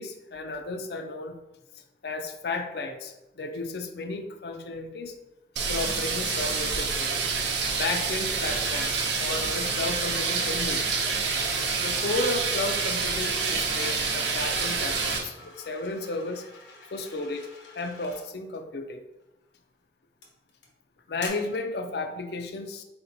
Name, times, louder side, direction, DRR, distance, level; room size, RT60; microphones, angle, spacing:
voice 1, 0.0-1.4 2.0-5.1 5.7-7.2 7.8-10.8 11.8-16.4 16.9-17.5 17.8-19.0 21.1-22.8, left 3 dB, 60° left, 7 dB, 0.4 m, -33 dB
sound 1, 5.6-15.2, right 4 dB, 75° right, 0.8 m, -27 dB
sound 2, 13.7-18.2 19.2-19.5 20.2-20.7 21.2-21.3, left 3 dB, 85° left, 1.0 m, -47 dB
4.3 x 4.3 x 2.6 m, 0.96 s
head